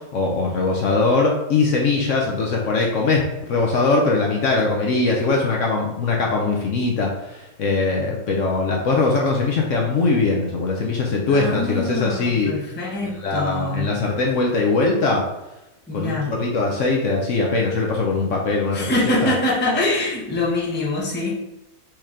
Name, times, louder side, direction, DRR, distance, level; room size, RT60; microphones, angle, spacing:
voice 1, 0.1-3.2 3.5-12.5 13.2-15.2 15.9-19.3, left 3 dB, 65° left, 0 dB, 0.9 m, -21 dB
voice 2, 11.3-13.9 15.9-16.3 18.7-21.3, left 2 dB, 10° left, -4 dB, 0.6 m, -24 dB
4.4 x 3.2 x 3.6 m, 0.98 s
omnidirectional pair, 1.7 m